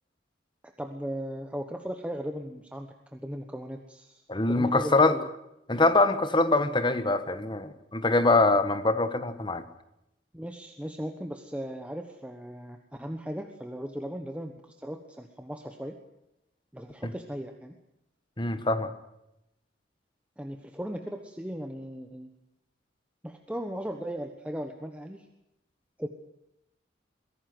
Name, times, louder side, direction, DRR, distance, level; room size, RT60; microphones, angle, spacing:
voice 1, 0.6-5.3 10.3-16.0 16.7-17.7 20.4-22.3 23.2-25.3 26.0-26.1, equal, 5° right, 4 dB, 1.2 m, -37 dB
voice 2, 4.3-5.1 5.7-9.6 18.4-18.9, left 2 dB, 25° left, 11 dB, 1.3 m, -24 dB
23.5 x 17.0 x 7.9 m, 0.86 s
head